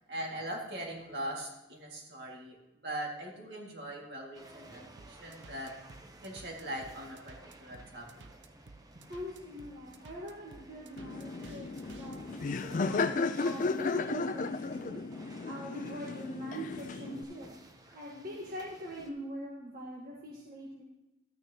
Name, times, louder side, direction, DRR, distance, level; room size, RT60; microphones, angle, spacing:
voice 1, 0.1-2.6 2.8-5.7 6.2-8.1, right 1 dB, 65° right, -1 dB, 2.0 m, -41 dB
sound 1, 4.3-19.1, right 1 dB, 20° right, 0.8 m, -55 dB
sound 2, 5.0-12.2, right 3 dB, 90° right, 0.6 m, -54 dB
voice 2, 9.1-15.0 15.4-17.5 17.8-20.8, equal, 50° right, -4 dB, 1.4 m, -43 dB
Laughter, 11.0-17.2, left 3 dB, 45° left, 0.4 m, -34 dB
12.5 x 9.0 x 2.9 m, 0.98 s
head